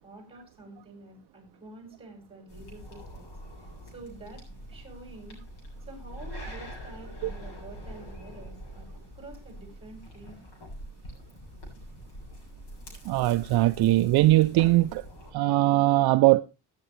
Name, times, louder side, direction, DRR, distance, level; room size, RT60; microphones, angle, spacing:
voice 1, 0.0-3.3 3.5-5.4 5.8-8.9 9.1-10.5, right 2 dB, 15° right, 5.1 m, -48 dB
sound 1, 2.5-15.3, equal, 80° left, 7.2 m, -44 dB
voice 2, 13.1-15.0 15.3-16.4, right 17 dB, 60° right, 0.5 m, -21 dB
17.5 x 9.2 x 3.2 m
cardioid pair, 165°, 44 cm